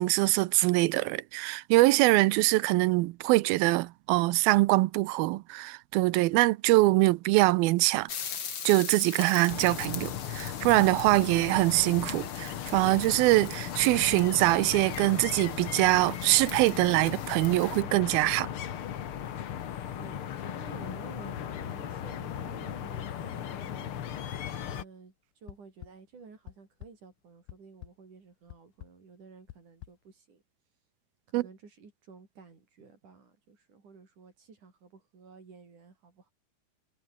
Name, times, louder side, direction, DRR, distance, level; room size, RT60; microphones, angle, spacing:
voice 1, 0.0-8.1 8.7-18.5 31.3-31.4, right 20 dB, 90° right, 2.5 m, -24 dB
sound 1, 8.1-17.8, left 7 dB, 40° left, 2.1 m, -42 dB
sound 2, 9.5-24.8, left 9 dB, 60° left, 1.5 m, -37 dB
voice 2, 20.0-23.9 24.6-30.4 31.3-36.3, right 5 dB, 55° right, 6.2 m, -52 dB
sound 3, 24.5-24.9 25.5-25.9 26.3-26.9 27.5-27.9 28.5-28.9 29.5-29.9, left 16 dB, 80° left, 2.6 m, -45 dB
omnidirectional pair, 4.2 m